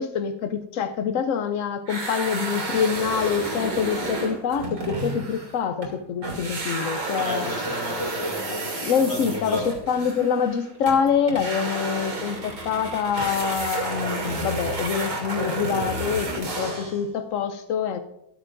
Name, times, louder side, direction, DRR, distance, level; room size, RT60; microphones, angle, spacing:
voice 1, 0.0-7.5 8.8-18.0, left 7 dB, 75° left, 0.7 m, -25 dB
sound 1, 1.9-6.0 6.2-17.0, right 2 dB, 70° right, 3.3 m, -31 dB
voice 2, 7.1-8.7 9.0-9.6, left 1 dB, 10° left, 5.3 m, -32 dB
13.5 x 13.5 x 2.6 m
omnidirectional pair, 2.0 m